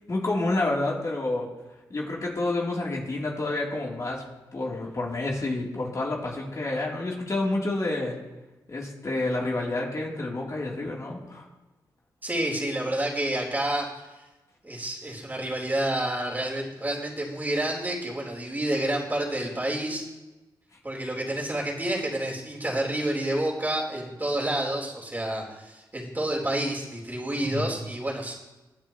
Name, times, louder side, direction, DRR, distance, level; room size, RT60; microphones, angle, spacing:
voice 1, 0.1-1.5 1.9-4.2 4.5-8.2 8.7-11.4 27.4-27.7, left 2 dB, 45° left, -3 dB, 3.3 m, -29 dB
voice 2, 12.2-13.9 14.1-14.2 14.6-20.0 20.8-28.3, right 1 dB, 20° right, -2 dB, 3.8 m, -29 dB
23.0 x 8.7 x 3.1 m, 1.1 s
cardioid pair, 75°, 8 cm